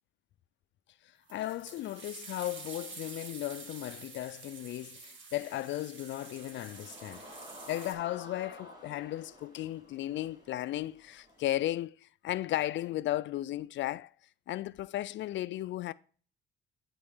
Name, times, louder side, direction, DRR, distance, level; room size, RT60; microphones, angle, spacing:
voice 1, 1.3-7.2 7.7-14.1 14.5-15.9, left 14 dB, 70° left, 0.4 m, -35 dB
sound 1, 1.3-7.9, right 4 dB, 70° right, 2.0 m, -48 dB
sound 2, 6.2-11.6, left 1 dB, 20° right, 4.5 m, -52 dB
11.5 x 4.3 x 3.6 m
cardioid pair, 90°, 20 cm